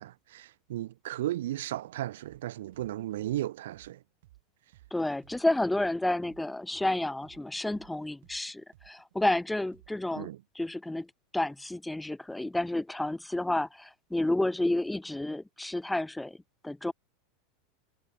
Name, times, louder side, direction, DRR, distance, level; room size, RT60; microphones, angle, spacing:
voice 1, 0.0-4.0 10.1-10.4, right 14 dB, 85° right, 0.4 m, -35 dB
sound 1, 2.2-2.4 2.7-6.4 6.7-10.2, right 16 dB, 70° right, 6.5 m, -59 dB
voice 2, 4.9-10.3 10.5-11.1 11.3-16.4 16.6-16.9, left 1 dB, 5° left, 0.5 m, -30 dB
supercardioid pair, 165°, 0 cm